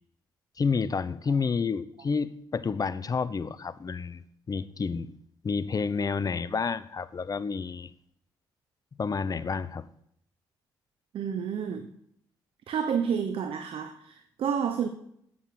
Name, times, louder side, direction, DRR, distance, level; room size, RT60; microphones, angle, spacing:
voice 1, 0.6-5.1 5.4-7.9 9.0-9.9, left 5 dB, 40° left, 0.8 m, -30 dB
voice 2, 11.1-11.9 12.7-14.9, right 7 dB, 70° right, 0.9 m, -30 dB
8.0 x 7.7 x 7.7 m
supercardioid pair, 60°, 10 cm